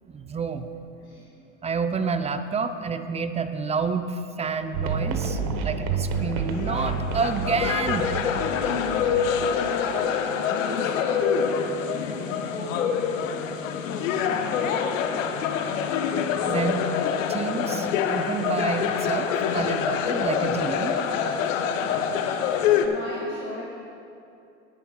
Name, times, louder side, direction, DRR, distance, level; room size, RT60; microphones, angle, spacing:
voice 1, 0.0-0.7 1.6-8.1 16.5-16.8 17.3-20.9, right 5 dB, 15° right, 9 dB, 0.6 m, -29 dB
sound 1, 4.7-9.9, right 5 dB, 55° right, 1.2 m, -30 dB
sound 2, 6.1-22.9, left 7 dB, 75° left, 0.9 m, -26 dB
voice 2, 8.5-11.7 12.0-15.4 21.8-23.6, left 2 dB, 30° left, -5 dB, 2.0 m, -40 dB
19.0 x 10.0 x 2.4 m, 2.7 s
hypercardioid pair, 90°, 39 cm